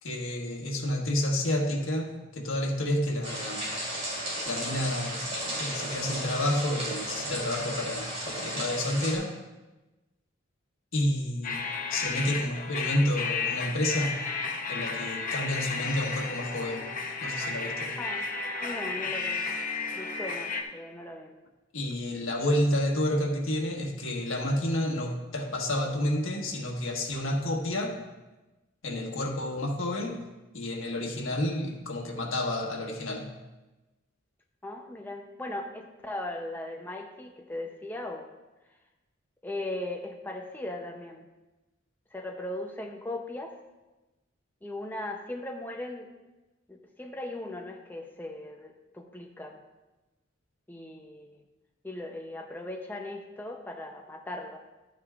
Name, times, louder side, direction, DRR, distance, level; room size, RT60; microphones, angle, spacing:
voice 1, 0.0-3.8 4.4-9.3 10.9-11.6 11.9-14.2 14.7-16.9 17.2-17.9 21.7-28.0 28.8-30.2 30.5-33.3, left 1 dB, 85° left, 1 dB, 1.4 m, -30 dB
sound 1, 3.2-9.1, right 1 dB, 35° right, 3.0 m, -34 dB
sound 2, 11.4-20.6, left 4 dB, 40° left, 0.8 m, -33 dB
voice 2, 18.0-18.3 18.6-19.5 19.9-21.4 34.6-38.3 39.4-41.3 42.1-43.6 44.6-46.1 46.7-49.6 50.7-51.4 51.8-54.6, left 1 dB, 10° left, 1 dB, 0.6 m, -38 dB
12.5 x 8.8 x 2.4 m, 1.1 s
head